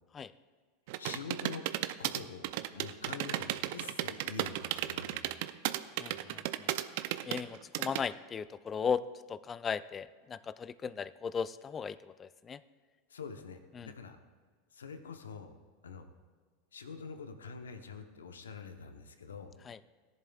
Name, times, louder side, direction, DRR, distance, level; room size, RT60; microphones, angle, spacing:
sound 1, 0.9-8.0, right 15 dB, 65° right, 0.5 m, -34 dB
voice 1, 1.0-1.7 2.0-5.2 13.1-14.2 14.7-15.5 15.8-16.1 16.7-19.5, left 5 dB, 85° left, 8 dB, 0.9 m, -45 dB
voice 2, 6.0-6.7 7.3-9.0 9.3-12.6 13.7-13.9 19.6-19.8, left 6 dB, 25° left, 16 dB, 0.4 m, -37 dB
17.5 x 11.0 x 2.4 m, 1.5 s
hypercardioid pair, 90°, 0 cm